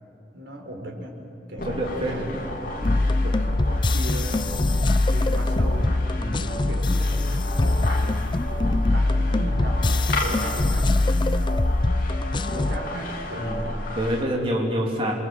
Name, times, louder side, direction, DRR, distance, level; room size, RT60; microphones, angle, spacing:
voice 1, 0.3-1.2 1.5-4.4 5.1-6.0 6.4-8.2 8.7-11.6 12.5-13.8, right 1 dB, 85° right, 2 dB, 4.3 m, -37 dB
sound 1, 1.6-14.2, left 1 dB, 50° left, 3.0 m, -33 dB
voice 2, 1.6-2.3 6.1-6.5 13.3-13.6 13.9-15.1, equal, 30° right, -1 dB, 3.2 m, -27 dB
sound 2, 2.8-12.8, left 2 dB, 25° left, 0.5 m, -23 dB
29.0 x 23.5 x 7.8 m, 2.8 s
head